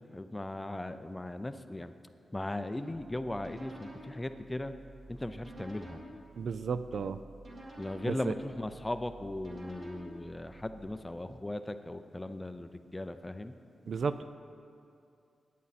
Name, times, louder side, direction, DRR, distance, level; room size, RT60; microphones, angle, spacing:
voice 1, 0.1-1.9 2.3-4.7 5.1-6.0 7.8-13.5, left 1 dB, 15° left, 9 dB, 0.5 m, -38 dB
sound 1, 2.9-10.8, right 1 dB, 45° right, 2.1 m, -51 dB
voice 2, 6.4-7.2 8.0-8.3 13.9-14.2, right 5 dB, 60° right, 12 dB, 0.4 m, -33 dB
16.0 x 9.4 x 4.2 m, 2.5 s
wide cardioid pair, 125°, 0 cm